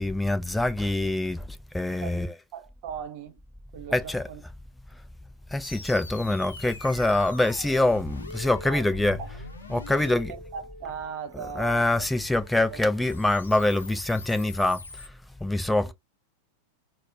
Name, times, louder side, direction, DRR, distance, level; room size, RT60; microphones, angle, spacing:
voice 1, 0.0-2.3 3.9-4.3 5.5-9.2 9.7-10.3 11.3-15.1 15.4-15.9, left 2 dB, 5° left, 0.4 m, -25 dB
voice 2, 2.0-3.4 3.7-4.4 8.7-8.9 9.2-9.4 9.9-12.1 12.7-12.8 15.7-15.9, right 7 dB, 45° right, 0.9 m, -39 dB
sound 1, 5.6-15.1, left 3 dB, 75° left, 0.6 m, -44 dB
4.2 x 2.1 x 2.7 m
figure-of-eight pair, 90°, 0 cm